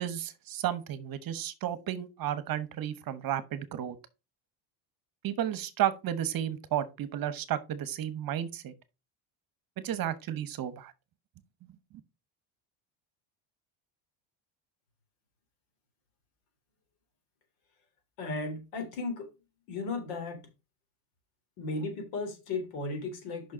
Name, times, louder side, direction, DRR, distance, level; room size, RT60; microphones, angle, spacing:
voice 1, 0.0-3.9 5.2-8.7 9.8-10.9, right 11 dB, 45° right, 1.1 m, -33 dB
voice 2, 18.2-19.3 19.7-20.5 21.6-23.5, left 3 dB, 85° left, 3.5 m, -35 dB
6.2 x 5.8 x 5.0 m
cardioid pair, 130°, 50 cm